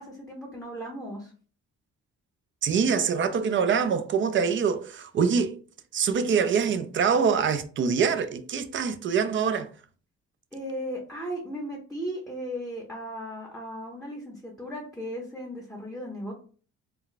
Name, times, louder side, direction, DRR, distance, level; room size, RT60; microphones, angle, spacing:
voice 1, 0.0-1.3 10.5-16.3, equal, ahead, 0.7 m, -36 dB
voice 2, 2.6-5.6 5.9-9.7, right 6 dB, 40° right, 0.4 m, -24 dB
2.2 x 2.2 x 3.8 m
cardioid pair, 90°, 30 cm